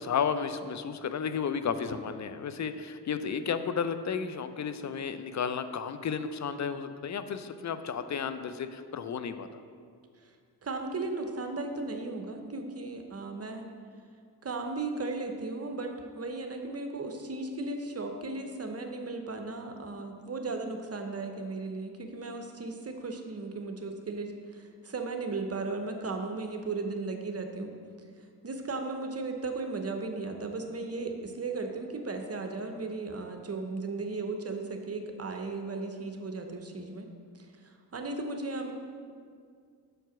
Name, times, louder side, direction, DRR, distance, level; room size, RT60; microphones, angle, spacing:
voice 1, 0.0-9.6, left 6 dB, 40° left, 10 dB, 0.5 m, -33 dB
voice 2, 10.6-13.7 14.4-27.7 28.4-37.1 37.3-38.7, right 3 dB, 30° right, 4 dB, 0.8 m, -36 dB
6.5 x 4.5 x 5.9 m, 2.1 s
supercardioid pair, 45°, 45 cm